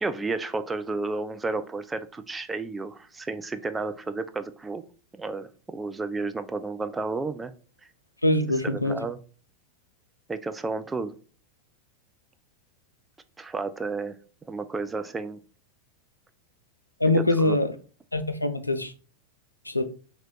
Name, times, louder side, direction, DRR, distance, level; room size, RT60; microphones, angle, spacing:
voice 1, 0.0-4.8 5.2-7.5 8.6-9.2 10.3-11.1 13.4-14.2 14.5-15.4 17.4-17.6, right 3 dB, 10° right, 0.3 m, -32 dB
voice 2, 8.2-9.0 17.0-17.7 18.1-18.9 19.6-19.8, left 1 dB, 85° left, 0.4 m, -23 dB
3.0 x 3.0 x 3.8 m
figure-of-eight pair, 90°, 0 cm